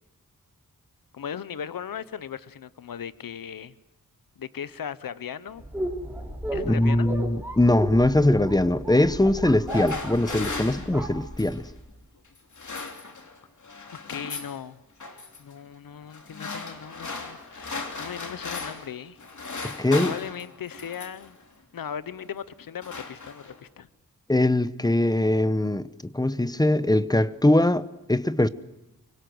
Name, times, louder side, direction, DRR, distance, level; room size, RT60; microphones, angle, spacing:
voice 1, 1.1-3.7 4.4-5.6 6.5-7.1 14.1-14.8 15.4-19.2 19.6-21.4 21.7-23.9, left 8 dB, 80° left, 0.9 m, -38 dB
sound 1, 5.6-11.8, equal, 5° right, 4.6 m, -34 dB
voice 2, 6.6-11.6 19.6-20.1 24.3-28.5, left 1 dB, 10° left, 0.8 m, -22 dB
sound 2, 9.5-11.7 12.4-13.4 13.6-14.6 15.0-15.4 16.1-18.9 19.2-21.3 22.1-22.3 22.6-23.7, left 4 dB, 60° left, 3.0 m, -37 dB
24.5 x 24.0 x 7.8 m
wide cardioid pair, 115°, 34 cm